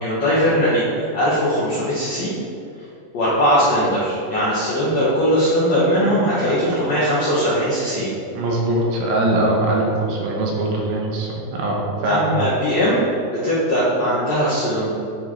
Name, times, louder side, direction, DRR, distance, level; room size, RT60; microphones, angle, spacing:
voice 1, 0.0-2.3 3.1-8.1 12.0-13.0 13.3-14.9, equal, 75° left, -10 dB, 1.5 m, -20 dB
voice 2, 8.3-12.3, right 1 dB, 80° right, -2 dB, 2.9 m, -21 dB
10.5 x 3.6 x 3.2 m, 2.6 s
omnidirectional pair, 4.8 m